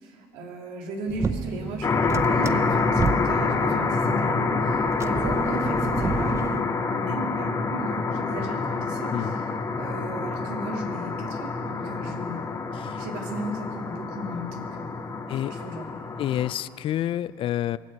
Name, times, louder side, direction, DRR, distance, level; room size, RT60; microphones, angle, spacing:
voice 1, 0.0-9.5 9.8-12.5 13.0-14.9 15.4-16.0, right 1 dB, 80° right, 1 dB, 2.7 m, -36 dB
sound 1, 1.1-6.6, right 4 dB, 25° right, 0.7 m, -31 dB
sound 2, 1.8-16.5, left 4 dB, 30° left, 1.7 m, -27 dB
voice 2, 12.7-13.0 15.3-15.5 16.2-17.8, left 12 dB, 50° left, 18 dB, 0.4 m, -28 dB
23.0 x 7.7 x 8.0 m, 2.3 s
supercardioid pair, 95°, 11 cm